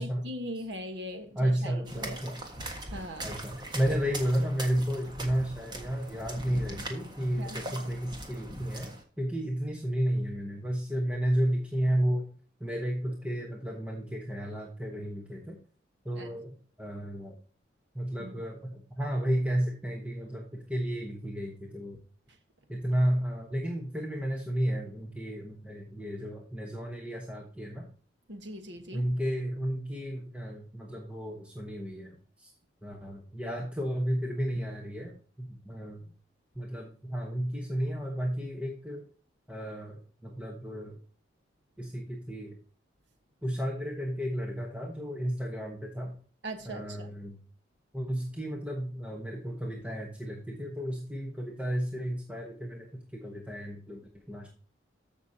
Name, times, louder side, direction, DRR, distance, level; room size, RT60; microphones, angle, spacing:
voice 1, 0.0-2.2 2.9-3.4 7.4-7.9 16.1-16.3 18.2-18.3 28.3-29.1 46.4-47.1, equal, 70° right, 1.3 m, -40 dB
voice 2, 1.3-2.4 3.2-12.3 12.6-15.6 16.0-17.4 17.9-22.0 22.7-27.9 28.9-32.5 32.8-36.1 36.5-39.1 39.5-41.0 41.8-42.6 43.4-46.2 46.6-47.4 47.9-54.5, equal, 5° right, 1.1 m, -32 dB
sound 1, 1.9-9.0, right 1 dB, 25° right, 1.4 m, -41 dB
14.0 x 6.0 x 2.8 m
head